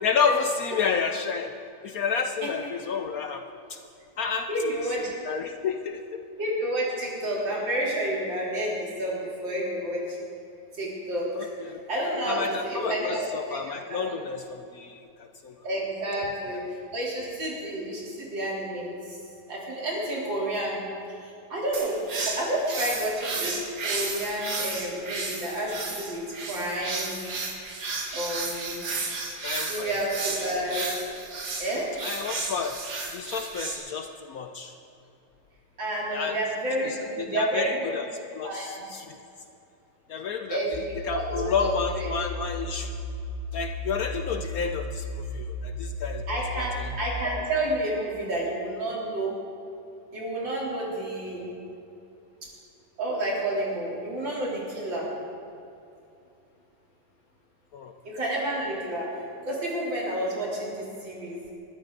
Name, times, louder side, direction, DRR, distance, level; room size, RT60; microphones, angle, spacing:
voice 1, 0.0-1.5 1.8-3.8 4.2-4.5 5.0-6.2 11.3-11.8 12.2-15.5 28.8-29.0 29.4-29.9 32.0-32.8 33.1-34.7 36.1-36.4 36.8-38.1 38.3-39.2 40.1-40.6 41.0-43.0 43.5-46.8 57.7-57.9, left 6 dB, 65° left, 6 dB, 1.0 m, -30 dB
voice 2, 4.5-5.0 6.4-10.2 10.8-11.5 11.9-14.1 15.6-16.6 16.9-19.2 19.5-20.8 21.2-23.5 23.8-26.2 26.5-27.2 28.1-28.7 29.7-30.8 31.6-31.9 35.8-37.9 38.4-38.7 40.5-41.7 42.0-42.1 46.3-49.3 50.1-51.5 53.0-55.1 58.0-59.1 59.4-61.4, right 1 dB, 75° right, -4 dB, 4.2 m, -30 dB
sound 1, 21.7-33.8, right 3 dB, 60° right, 2.2 m, -33 dB
sound 2, 40.7-47.2, equal, 15° left, 2.8 m, -35 dB
20.5 x 14.0 x 3.9 m, 2.7 s
omnidirectional pair, 2.0 m